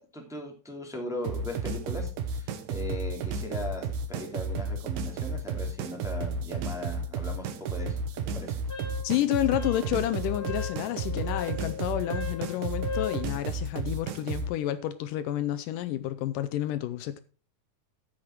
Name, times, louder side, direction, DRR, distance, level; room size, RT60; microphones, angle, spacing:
voice 1, 0.1-8.6, left 1 dB, ahead, 2.0 m, -38 dB
sound 1, 1.2-14.5, right 3 dB, 85° right, 2.9 m, -33 dB
Wind instrument woodwind instrument, 8.7-13.3, left 7 dB, 40° left, 3.0 m, -38 dB
voice 2, 9.0-17.2, left 13 dB, 80° left, 2.2 m, -30 dB
14.5 x 6.5 x 4.5 m
omnidirectional pair, 4.0 m